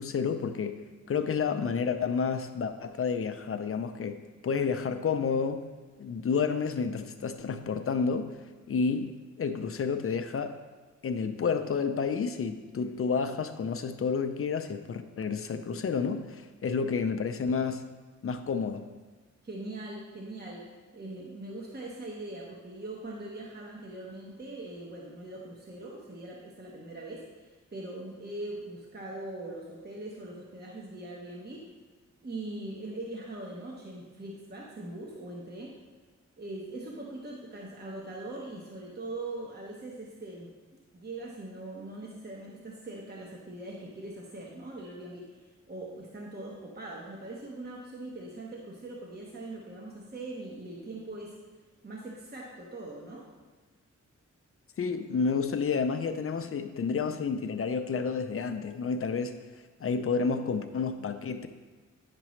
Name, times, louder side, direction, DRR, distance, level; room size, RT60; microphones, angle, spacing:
voice 1, 0.0-5.7 6.0-8.4 8.7-10.6 11.0-17.9 18.2-18.9 54.8-59.4 59.8-61.5, left 5 dB, 50° left, 8 dB, 0.5 m, -30 dB
voice 2, 19.4-31.6 32.2-35.7 36.4-40.5 40.9-51.4 51.8-53.3, right 2 dB, 35° right, -2 dB, 1.0 m, -41 dB
9.6 x 6.0 x 3.1 m, 1.3 s
wide cardioid pair, 130°, 30 cm